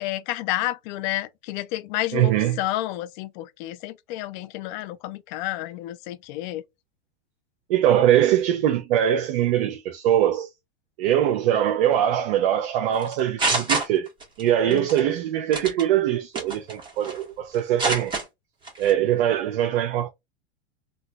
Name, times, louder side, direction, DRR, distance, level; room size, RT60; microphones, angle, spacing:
voice 1, 0.0-6.6 14.7-14.9, left 15 dB, 45° left, 0.5 m, -30 dB
voice 2, 2.1-2.6 7.7-10.5 11.0-14.1 14.4-18.1 18.8-20.1, right 11 dB, 60° right, 0.7 m, -22 dB
sound 1, 13.0-14.4 14.7-15.0 15.5-15.8 16.3-17.2 17.5-18.2 18.6-18.9, right 3 dB, 15° right, 1.4 m, -26 dB
3.8 x 2.4 x 2.3 m
hypercardioid pair, 125°, 32 cm